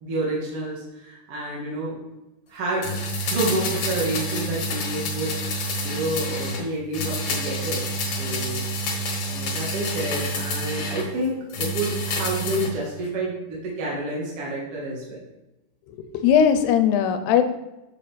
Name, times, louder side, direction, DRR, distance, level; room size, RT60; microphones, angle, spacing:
voice 1, 0.0-2.0 2.5-8.6 9.3-15.2, right 2 dB, 50° right, -5 dB, 1.9 m, -29 dB
sound 1, 2.8-6.6 6.9-11.1 11.5-12.7 13.0-13.1, equal, 55° left, 2.1 m, -28 dB
voice 2, 15.9-17.4, left 8 dB, 85° left, 8 dB, 2.9 m, -19 dB
12.0 x 6.5 x 3.4 m, 0.99 s
omnidirectional pair, 4.7 m